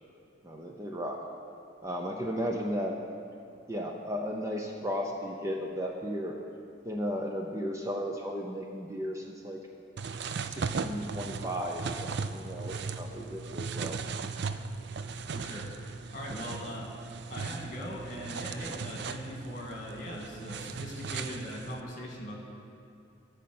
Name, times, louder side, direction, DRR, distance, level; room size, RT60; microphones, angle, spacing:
voice 1, 0.4-1.2 1.8-2.9 3.7-6.4 6.9-9.6 10.5-14.0, equal, 15° right, 1 dB, 0.6 m, -35 dB
sound 1, 10.0-21.8, right 5 dB, 55° right, 0.4 m, -37 dB
voice 2, 15.3-15.7 16.1-16.9 17.3-22.4, equal, 40° left, -1 dB, 1.9 m, -40 dB
12.5 x 5.6 x 7.6 m, 2.6 s
head